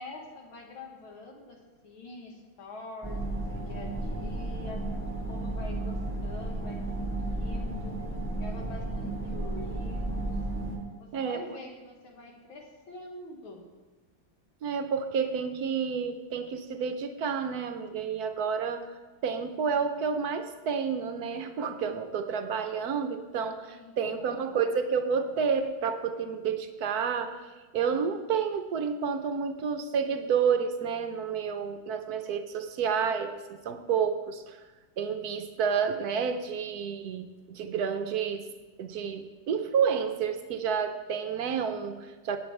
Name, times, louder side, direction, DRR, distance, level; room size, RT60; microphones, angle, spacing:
voice 1, 0.0-4.9 5.3-8.0 8.4-10.3 11.0-13.7 23.7-24.6, left 3 dB, 85° left, 1 dB, 2.5 m, -45 dB
sound 1, 3.0-10.8, right 2 dB, 10° left, 1.3 m, -33 dB
voice 2, 11.1-11.4 14.6-18.9 19.2-27.4 27.7-34.6 35.0-38.4 38.8-42.4, right 6 dB, 65° right, 8 dB, 1.0 m, -30 dB
17.0 x 8.6 x 3.3 m, 1.3 s
omnidirectional pair, 2.2 m